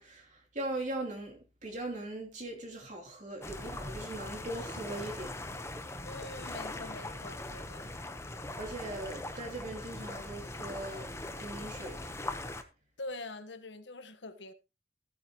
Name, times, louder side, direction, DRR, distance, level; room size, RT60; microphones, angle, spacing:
voice 1, 0.0-5.3 8.6-12.1, right 2 dB, 40° right, 3.1 m, -40 dB
sound 1, 3.4-12.6, left 2 dB, 15° left, 1.0 m, -41 dB
voice 2, 6.0-7.9 13.0-14.5, left 2 dB, 70° left, 1.3 m, -44 dB
16.0 x 9.0 x 3.0 m
head